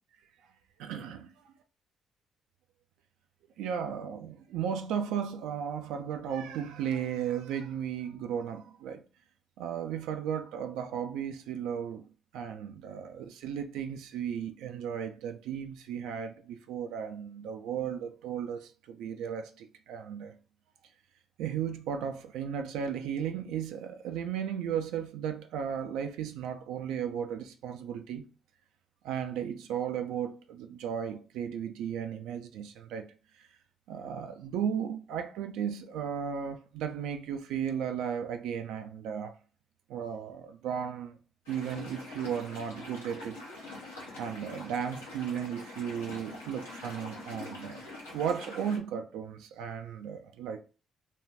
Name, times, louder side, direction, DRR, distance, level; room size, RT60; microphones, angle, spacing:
voice 1, 0.8-1.2 3.6-9.0 9.6-12.1 12.3-20.4 21.4-28.3 29.0-33.1 33.9-39.4 39.9-41.2 41.5-43.4 44.2-50.6, right 8 dB, 75° right, 0.3 m, -35 dB
sound 1, 41.5-48.8, left 2 dB, 90° left, 0.7 m, -44 dB
2.4 x 2.2 x 3.2 m
hypercardioid pair, 45°, 0 cm